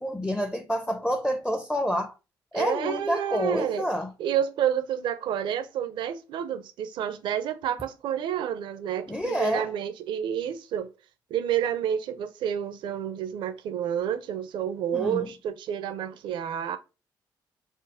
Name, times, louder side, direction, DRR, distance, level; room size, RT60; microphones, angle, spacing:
voice 1, 0.0-2.1 2.5-4.1 9.1-9.7 14.9-15.3, equal, 10° left, 0.5 m, -28 dB
voice 2, 2.5-3.9 4.2-10.9 11.3-16.8, right 9 dB, 80° right, 0.5 m, -29 dB
4.5 x 2.0 x 3.4 m
cardioid pair, 100°, 8 cm